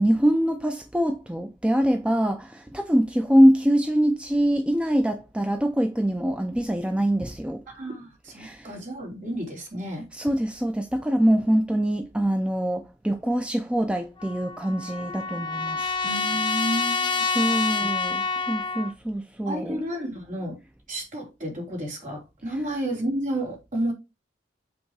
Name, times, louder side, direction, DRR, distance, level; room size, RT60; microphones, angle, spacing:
voice 1, 0.0-7.6 8.4-8.7 10.1-15.9 17.3-19.8, equal, 5° right, 0.5 m, -24 dB
voice 2, 7.7-10.1 16.0-17.5 17.8-17.9 19.4-20.6 20.9-23.9, right 1 dB, 45° right, 3.2 m, -31 dB
Trumpet, 14.2-18.9, left 4 dB, 25° left, 1.0 m, -27 dB
7.8 x 3.9 x 4.7 m
head